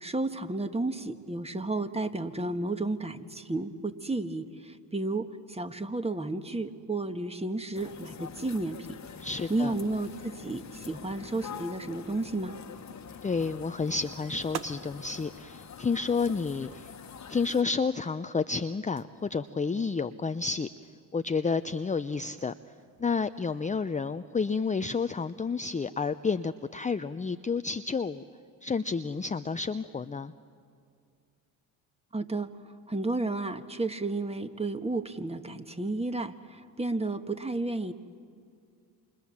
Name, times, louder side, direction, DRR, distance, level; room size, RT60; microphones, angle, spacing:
voice 1, 0.0-8.8 9.5-12.6 32.1-32.5 32.9-37.9, right 2 dB, 15° right, 9 dB, 1.7 m, -32 dB
sound 1, 7.7-17.6, left 7 dB, 35° left, 1.5 m, -45 dB
voice 2, 9.2-9.7 13.2-16.9 17.3-20.7 21.1-22.5 23.0-28.2 28.6-30.3, left 4 dB, 15° left, 10 dB, 0.7 m, -30 dB
sound 2, 14.4-24.2, right 10 dB, 70° right, 1.5 m, -50 dB
29.0 x 26.5 x 7.3 m, 2.3 s
hypercardioid pair, 65°, 45 cm